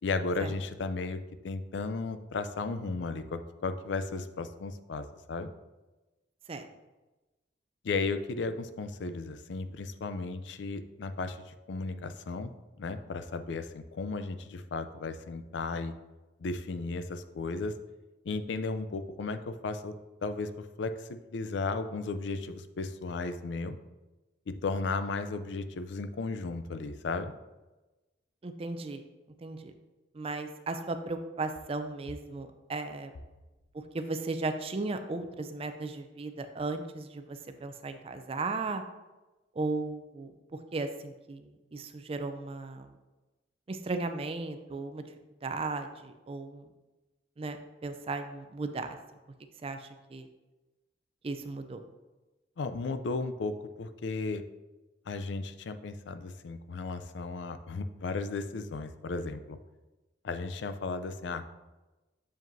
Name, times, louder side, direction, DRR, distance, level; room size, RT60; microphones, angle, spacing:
voice 1, 0.0-5.5 7.8-12.5 12.8-15.9 16.4-17.7 18.2-19.9 20.2-23.8 24.5-27.3 52.6-53.5 53.8-54.4 55.1-59.6 60.2-61.5, left 3 dB, 70° left, 10 dB, 0.4 m, -35 dB
voice 2, 28.4-29.0 29.4-29.7 30.1-33.1 33.9-38.8 39.6-40.3 40.7-42.9 43.7-45.0 45.4-46.7 47.4-47.6 47.8-49.0 49.6-50.3 51.2-51.8, right 3 dB, 30° right, 8 dB, 0.4 m, -36 dB
7.2 x 5.0 x 2.6 m, 1.1 s
head